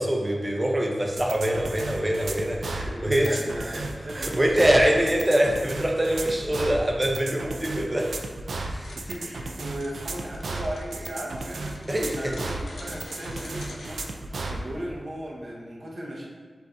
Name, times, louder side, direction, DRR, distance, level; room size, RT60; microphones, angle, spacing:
voice 1, 0.0-3.4 3.7-3.8 4.1-8.1 8.6-8.9 11.9-12.1, right 1 dB, 20° right, 0 dB, 0.6 m, -24 dB
sound 1, 1.2-14.6, right 2 dB, 85° right, 0.3 m, -34 dB
voice 2, 2.9-5.0 8.7-14.0 14.5-16.3, right 1 dB, 55° right, -5 dB, 0.8 m, -37 dB
sound 2, 8.7-14.0, left 2 dB, 85° left, 0.5 m, -45 dB
7.8 x 2.6 x 2.3 m, 1.5 s
wide cardioid pair, 95°, 0 cm